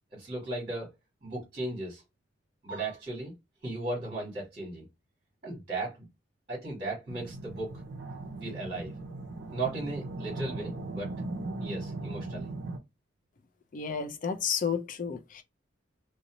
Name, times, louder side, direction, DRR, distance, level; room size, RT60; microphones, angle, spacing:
voice 1, 0.1-0.9 1.2-2.0 2.6-3.3 3.6-4.8 5.4-6.1 6.5-7.8 8.4-8.9 9.5-11.1 11.6-12.5, right 2 dB, 30° right, 1.3 m, -36 dB
sound 1, 7.1-12.8, right 2 dB, 65° right, 0.5 m, -38 dB
voice 2, 13.7-15.4, left 6 dB, 40° left, 0.4 m, -31 dB
2.6 x 2.0 x 2.9 m
head